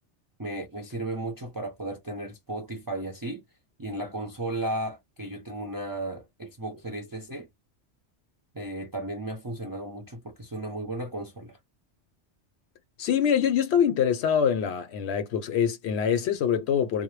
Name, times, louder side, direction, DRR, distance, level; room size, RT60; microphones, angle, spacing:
voice 1, 0.4-3.4 3.8-7.5 8.5-11.6, right 1 dB, 30° right, 0.4 m, -34 dB
voice 2, 13.0-17.0, left 8 dB, 70° left, 0.8 m, -24 dB
2.1 x 2.0 x 3.1 m
omnidirectional pair, 1.2 m